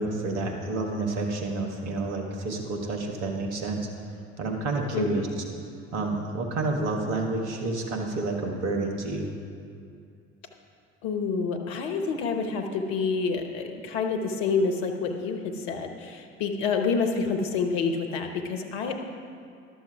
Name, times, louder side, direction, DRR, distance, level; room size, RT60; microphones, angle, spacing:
voice 1, 0.0-3.8 4.4-5.3 5.9-9.3, right 2 dB, 65° right, 2 dB, 1.4 m, -29 dB
voice 2, 4.9-5.3 11.0-19.0, left 5 dB, 60° left, 4 dB, 1.1 m, -28 dB
12.0 x 7.1 x 4.7 m, 2.4 s
figure-of-eight pair, 60°, 37 cm